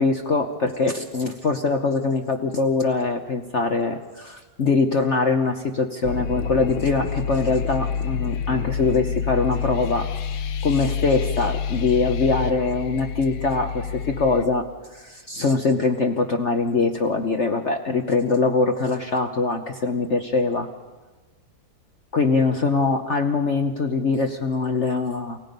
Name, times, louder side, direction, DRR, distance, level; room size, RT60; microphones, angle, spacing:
voice 1, 0.0-10.1 10.6-14.7 14.9-20.7 22.1-25.4, left 4 dB, 45° left, 4 dB, 1.0 m, -23 dB
sound 1, 6.0-14.4, left 7 dB, 75° left, 1.5 m, -28 dB
29.0 x 18.0 x 5.3 m, 1.3 s
omnidirectional pair, 2.1 m